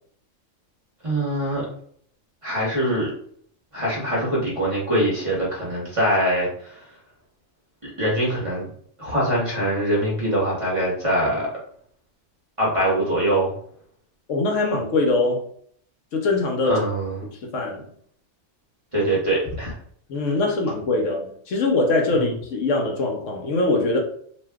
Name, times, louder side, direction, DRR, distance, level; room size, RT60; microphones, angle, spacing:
voice 1, 1.0-1.7 2.4-3.1 3.7-6.8 7.8-8.7 9.0-11.5 12.6-13.5 16.6-17.2 18.9-19.7 22.1-22.3, right 1 dB, 25° right, -7 dB, 0.9 m, -23 dB
voice 2, 14.3-15.4 16.1-16.8 17.4-17.8 20.1-24.0, left 2 dB, 70° left, 1 dB, 0.9 m, -22 dB
2.5 x 2.1 x 3.5 m, 0.62 s
omnidirectional pair, 1.4 m